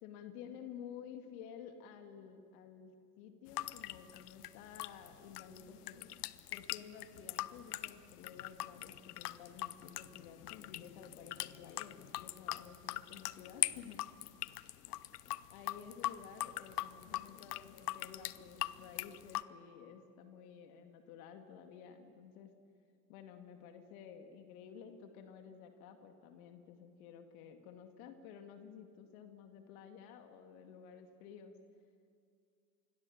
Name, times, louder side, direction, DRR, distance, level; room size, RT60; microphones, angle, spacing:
voice 1, 0.0-6.1 6.5-14.0 14.9-15.0 15.5-22.5 23.1-31.5, left 7 dB, 70° left, 7 dB, 2.3 m, -53 dB
sound 1, 3.5-19.4, left 15 dB, 85° left, 0.7 m, -42 dB
27.5 x 21.5 x 7.3 m, 2.4 s
hypercardioid pair, 75°, 45 cm